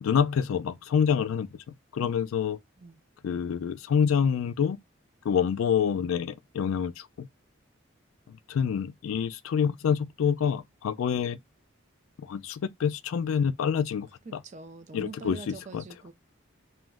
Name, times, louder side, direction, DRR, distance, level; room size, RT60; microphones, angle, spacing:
voice 1, 0.0-1.5 1.9-2.6 3.2-4.8 5.3-7.3 8.5-11.4 12.2-14.4 14.9-15.8, left 7 dB, 90° left, 0.3 m, -27 dB
voice 2, 14.3-16.1, right 3 dB, 35° right, 0.3 m, -43 dB
2.2 x 2.1 x 3.3 m
head